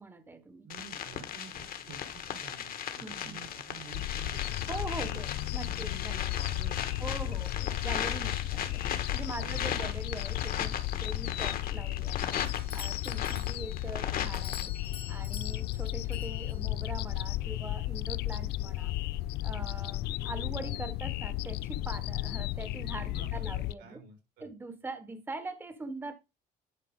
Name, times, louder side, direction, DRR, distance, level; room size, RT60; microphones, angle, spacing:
voice 1, 0.0-0.7 3.0-3.4 4.7-6.4 7.0-8.8 9.1-14.7 15.1-18.9 19.4-24.0 24.4-26.1, right 3 dB, 15° right, 1.0 m, -42 dB
voice 2, 0.6-4.6 5.0-7.4 9.3-9.7 13.2-13.5 23.0-24.5, right 6 dB, 85° right, 3.9 m, -50 dB
sound 1, 0.7-14.6, left 9 dB, 60° left, 1.4 m, -37 dB
sound 2, 3.9-23.7, left 16 dB, 75° left, 0.4 m, -34 dB
Doorbell, 12.5-16.9, left 7 dB, 35° left, 0.9 m, -47 dB
10.5 x 4.4 x 3.6 m
cardioid pair, 110°, 17 cm